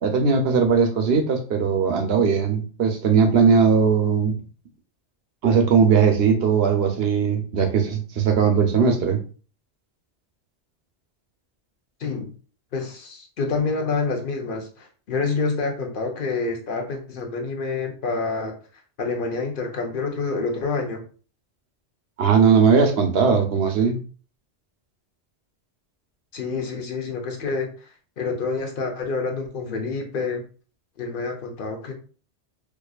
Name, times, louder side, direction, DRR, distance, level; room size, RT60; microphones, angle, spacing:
voice 1, 0.0-4.3 5.4-9.2 22.2-24.0, right 6 dB, 65° right, 5 dB, 0.9 m, -19 dB
voice 2, 12.7-18.5 19.0-21.0 26.3-27.9 28.2-30.4 31.0-31.9, left 4 dB, 55° left, 3 dB, 0.9 m, -27 dB
4.6 x 2.5 x 2.3 m, 0.38 s
omnidirectional pair, 1.1 m